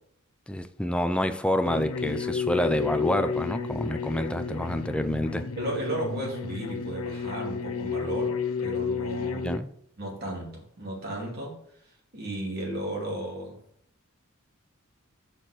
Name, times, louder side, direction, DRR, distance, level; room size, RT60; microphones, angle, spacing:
voice 1, 0.5-5.5 9.3-9.7, equal, 5° left, 0.5 m, -28 dB
sound 1, 1.7-9.6, left 5 dB, 70° left, 0.6 m, -31 dB
voice 2, 5.6-9.5 10.0-11.6 12.1-13.6, right 1 dB, 45° right, 2.6 m, -34 dB
6.8 x 6.1 x 4.9 m
head